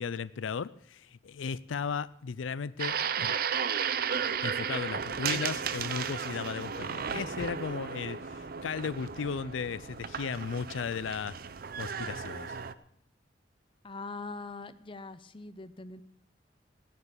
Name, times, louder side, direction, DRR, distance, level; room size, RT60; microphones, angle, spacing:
voice 1, 0.0-3.3 4.2-11.4 11.8-12.6, left 6 dB, 85° left, 18 dB, 0.5 m, -36 dB
sound 1, 2.8-12.7, right 7 dB, 50° right, 0.6 m, -34 dB
voice 2, 13.8-16.0, left 3 dB, 25° left, 12 dB, 0.7 m, -42 dB
16.5 x 6.7 x 8.6 m, 0.69 s
head